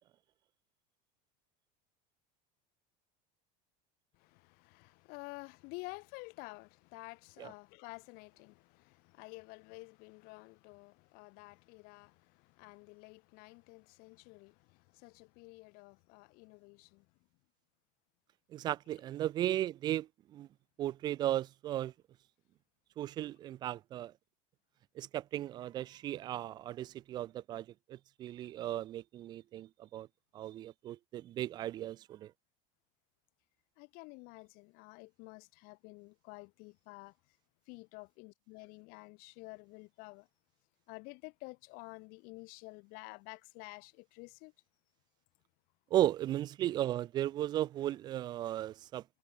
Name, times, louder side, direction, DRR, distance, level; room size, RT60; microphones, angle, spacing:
voice 1, 4.2-17.0 33.8-37.1 37.7-40.3 40.9-44.5, left 28 dB, 45° left, 1.5 m, -51 dB
voice 2, 18.5-20.5 20.8-21.9 23.0-24.1 25.0-30.1 30.3-32.3 45.9-49.0, right 13 dB, 20° right, 0.3 m, -36 dB
supercardioid pair, 170°, 20 cm